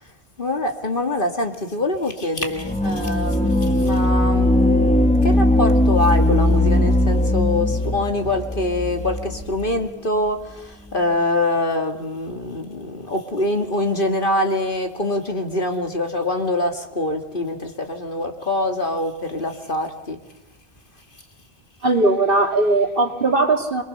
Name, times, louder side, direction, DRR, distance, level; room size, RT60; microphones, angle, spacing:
voice 1, 0.4-20.2, left 1 dB, 55° left, 5 dB, 2.4 m, -24 dB
sound 1, 2.6-9.7, left 1 dB, 5° left, 1.6 m, -19 dB
voice 2, 21.8-23.8, right 2 dB, 60° right, 4 dB, 2.6 m, -19 dB
27.0 x 23.0 x 6.7 m, 0.92 s
omnidirectional pair, 1.1 m